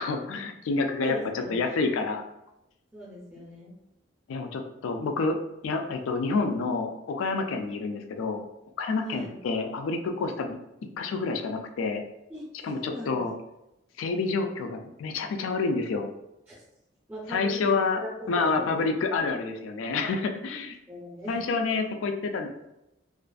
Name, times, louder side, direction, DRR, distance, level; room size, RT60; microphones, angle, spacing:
voice 1, 0.0-2.2 4.3-5.4 5.6-8.4 8.8-10.6 11.0-12.0 12.6-13.3 14.0-16.1 17.3-18.0 18.3-20.8 21.3-22.5, left 4 dB, 85° left, 5 dB, 0.3 m, -28 dB
voice 2, 1.0-1.5 2.9-3.7 9.0-9.4 12.3-13.2 16.5-16.6 17.1-18.1 18.3-18.7 20.9-21.7, equal, 10° right, -7 dB, 0.5 m, -39 dB
2.4 x 2.4 x 2.3 m, 0.90 s
head